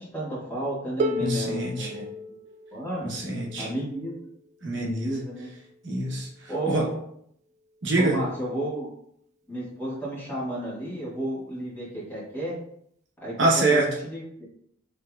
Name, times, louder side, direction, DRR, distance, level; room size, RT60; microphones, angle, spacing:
voice 1, 0.0-2.1 2.7-3.1 3.6-4.1 4.7-5.5 6.5-6.9 8.0-8.9 9.5-12.6 13.2-14.4, right 1 dB, 10° left, -8 dB, 1.6 m, -32 dB
Harp, 1.0-6.8 7.8-7.9, equal, 35° right, 0.3 m, -35 dB
voice 2, 1.2-1.9 3.0-3.7 4.6-5.2 5.8-6.9 7.8-8.2 13.4-13.9, right 2 dB, 60° right, -2 dB, 0.9 m, -25 dB
5.8 x 3.2 x 2.3 m, 0.68 s
head